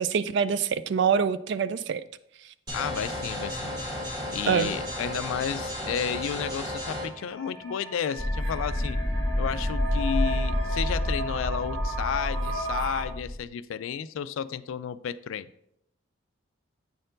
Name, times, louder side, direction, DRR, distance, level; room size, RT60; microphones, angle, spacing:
voice 1, 0.0-2.0 4.5-4.7, right 6 dB, 55° right, 0.3 m, -25 dB
voice 2, 2.7-3.7 4.3-9.0 9.4-15.5, left 8 dB, 75° left, 0.3 m, -32 dB
sound 1, 2.7-7.1, left 1 dB, 20° right, 1.6 m, -34 dB
sound 2, 5.9-13.0, right 1 dB, 75° right, 1.8 m, -36 dB
sound 3, 8.2-13.4, left 1 dB, 15° left, 1.0 m, -28 dB
8.5 x 4.4 x 3.9 m
head